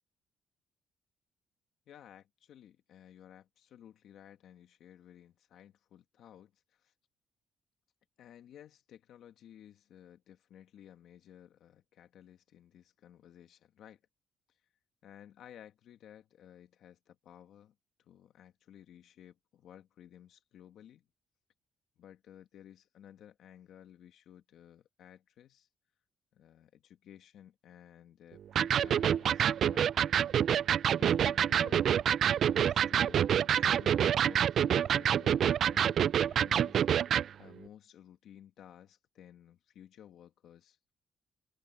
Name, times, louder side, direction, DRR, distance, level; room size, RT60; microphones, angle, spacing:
voice 1, 1.9-6.9 8.2-14.0 14.5-14.6 15.0-17.7 18.1-21.0 22.0-25.7 26.3-29.5 29.7-29.9 31.0-31.9 32.4-40.8, left 10 dB, 75° left, 1.6 m, -55 dB
Electric guitar, 28.6-37.3, right 9 dB, 65° right, 0.3 m, -27 dB
cardioid pair, 90°, 0 cm